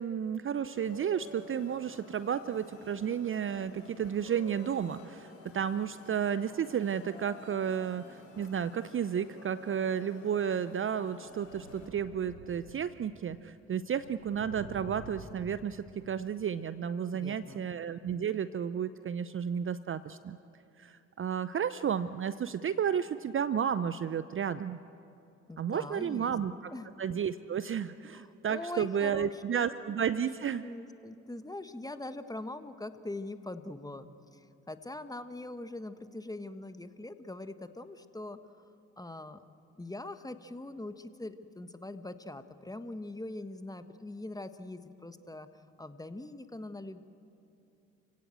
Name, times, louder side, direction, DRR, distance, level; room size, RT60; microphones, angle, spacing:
voice 1, 0.0-20.4 20.8-24.8 25.6-26.7 27.0-30.6, right 8 dB, 35° right, 14 dB, 0.7 m, -32 dB
sound 1, 0.7-11.9, left 1 dB, 85° left, 4.1 m, -51 dB
sound 2, 11.2-13.4 13.7-16.4 17.3-17.5, right 3 dB, 80° right, 2.0 m, -50 dB
voice 2, 17.1-17.6 25.5-26.3 26.6-26.9 28.1-39.4 39.8-45.5 45.8-47.0, left 2 dB, 10° left, 10 dB, 1.4 m, -43 dB
30.0 x 16.5 x 7.9 m, 2.7 s
hypercardioid pair, 50°, 37 cm